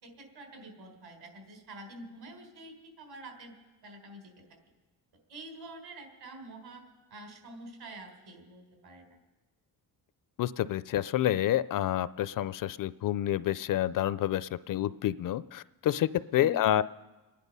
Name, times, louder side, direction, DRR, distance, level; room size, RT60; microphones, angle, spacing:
voice 1, 0.0-3.5 3.8-4.3 5.3-6.8 7.1-9.1 16.3-16.8, right 2 dB, 65° right, 4 dB, 3.9 m, -47 dB
voice 2, 10.4-16.8, left 12 dB, 55° left, 17 dB, 0.5 m, -28 dB
26.0 x 10.0 x 5.4 m, 1.2 s
cardioid pair, 105°, 40 cm